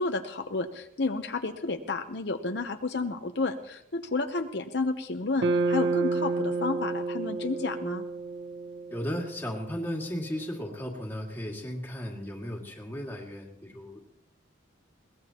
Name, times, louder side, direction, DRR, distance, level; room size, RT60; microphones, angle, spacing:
voice 1, 0.0-8.0, left 3 dB, 60° left, 6 dB, 0.8 m, -31 dB
sound 1, 5.4-9.7, right 3 dB, 60° right, 0.7 m, -30 dB
voice 2, 8.9-14.1, equal, 10° left, -1 dB, 2.1 m, -35 dB
21.5 x 18.0 x 2.9 m, 0.79 s
head